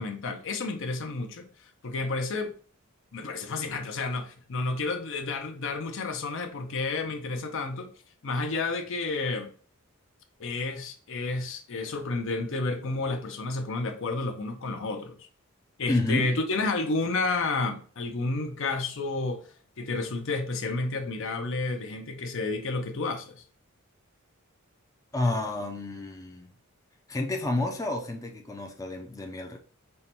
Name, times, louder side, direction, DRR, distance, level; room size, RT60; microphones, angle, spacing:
voice 1, 0.0-1.5 1.8-2.5 3.1-7.9 8.2-9.5 10.4-15.2 15.8-19.5 19.8-23.4, left 3 dB, 65° left, 0.6 m, -30 dB
voice 2, 15.9-16.3 25.1-26.5 27.1-29.6, left 2 dB, 15° left, 0.4 m, -30 dB
5.5 x 2.2 x 2.9 m
head